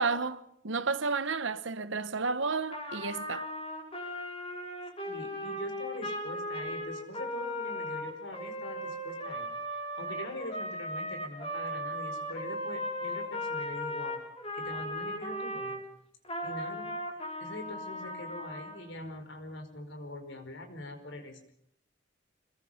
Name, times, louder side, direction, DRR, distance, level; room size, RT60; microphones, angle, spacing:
voice 1, 0.0-3.5, right 4 dB, 65° right, 1.0 m, -31 dB
Trumpet, 2.7-15.8 16.2-18.8, equal, 30° left, 5.7 m, -37 dB
voice 2, 5.0-14.2 14.5-15.8 16.4-17.0 17.4-21.5, left 1 dB, 60° left, 4.9 m, -43 dB
27.5 x 21.5 x 5.8 m
head